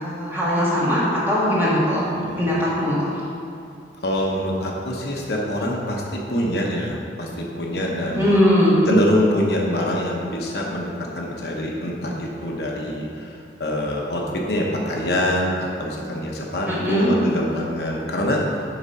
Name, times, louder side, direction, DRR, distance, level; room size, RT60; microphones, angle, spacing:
voice 1, 0.0-2.0 2.4-3.2 8.2-8.9 16.7-17.1, equal, 10° right, -9 dB, 1.9 m, -20 dB
voice 2, 4.0-6.0 6.3-8.4 8.9-13.3 13.6-18.6, equal, 65° left, -1 dB, 0.9 m, -24 dB
9.3 x 3.6 x 5.6 m, 2.5 s
head